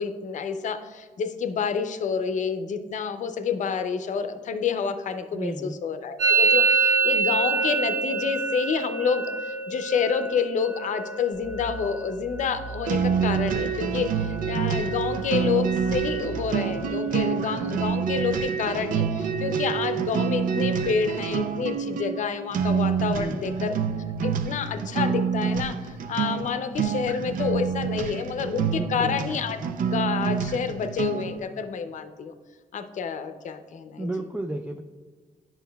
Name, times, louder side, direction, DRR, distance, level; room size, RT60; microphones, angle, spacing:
voice 1, 0.0-23.7 24.2-32.3 32.7-34.2, left 6 dB, 60° left, 9 dB, 0.6 m, -29 dB
voice 2, 5.3-5.7 23.1-23.6 28.7-29.2 34.0-34.8, right 2 dB, 10° right, 4 dB, 0.3 m, -32 dB
Musical instrument, 6.2-13.8 14.1-14.7 14.9-15.5 15.8-17.8, right 5 dB, 90° right, 1.2 m, -27 dB
sound 1, 11.3-16.9, right 2 dB, 55° right, 0.9 m, -41 dB
sound 2, 12.9-31.4, right 6 dB, 70° right, 0.5 m, -27 dB
9.2 x 5.7 x 2.3 m, 1.4 s
cardioid pair, 105°, 15 cm